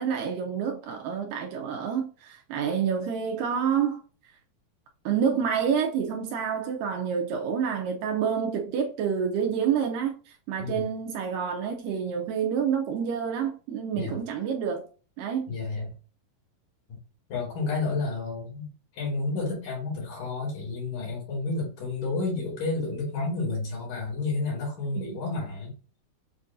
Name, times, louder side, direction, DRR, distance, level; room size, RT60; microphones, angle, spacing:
voice 1, 0.0-4.0 5.1-14.9 15.2-15.5, right 7 dB, 80° right, 2.1 m, -28 dB
voice 2, 15.5-15.9 17.3-25.7, left 3 dB, 65° left, 3.2 m, -31 dB
7.3 x 2.5 x 2.6 m
omnidirectional pair, 4.1 m